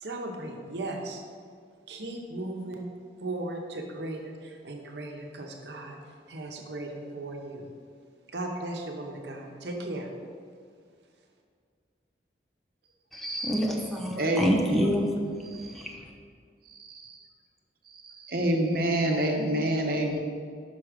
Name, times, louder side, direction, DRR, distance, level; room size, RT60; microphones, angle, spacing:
voice 1, 0.0-1.2 1.9-2.9 3.2-6.0 6.3-7.7 8.3-10.1, right 2 dB, 80° right, 2 dB, 0.9 m, -36 dB
voice 2, 13.1-15.1 15.7-15.9, equal, ahead, -1 dB, 0.6 m, -27 dB
voice 3, 14.2-15.0 15.5-15.7 16.7-17.2 17.9-20.2, right 1 dB, 55° right, 1 dB, 1.0 m, -28 dB
6.1 x 5.6 x 5.0 m, 2.1 s
head